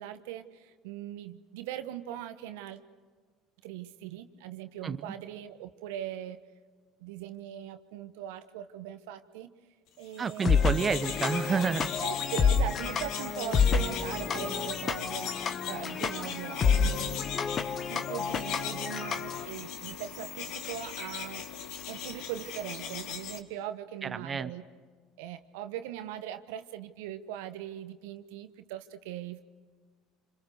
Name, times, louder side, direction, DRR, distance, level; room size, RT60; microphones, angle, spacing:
voice 1, 0.0-2.8 3.6-6.4 7.0-9.5 10.0-10.7 12.0-15.3 15.7-17.3 17.9-21.4 21.9-24.6 25.2-29.4, right 11 dB, 70° right, 10 dB, 1.1 m, -40 dB
sound 1, 10.1-23.4, left 8 dB, 60° left, 1.8 m, -39 dB
voice 2, 10.2-11.9 24.0-24.5, right 6 dB, 30° right, 11 dB, 1.0 m, -29 dB
sound 2, 10.4-19.5, left 6 dB, 40° left, 1.6 m, -29 dB
27.5 x 26.5 x 6.7 m, 1.5 s
hypercardioid pair, 65°, 0 cm